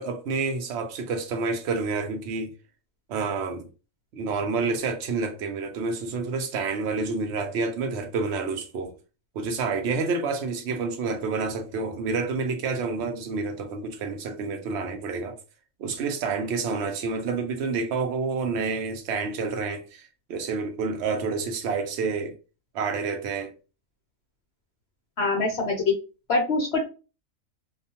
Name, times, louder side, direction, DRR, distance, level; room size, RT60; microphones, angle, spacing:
voice 1, 0.0-2.5 3.1-3.7 4.1-9.0 9.3-15.4 15.8-22.3 22.7-23.5, right 4 dB, 65° right, 0.8 m, -29 dB
voice 2, 25.2-25.9 26.3-26.8, left 3 dB, 60° left, 0.7 m, -24 dB
2.4 x 2.2 x 2.7 m
omnidirectional pair, 1.4 m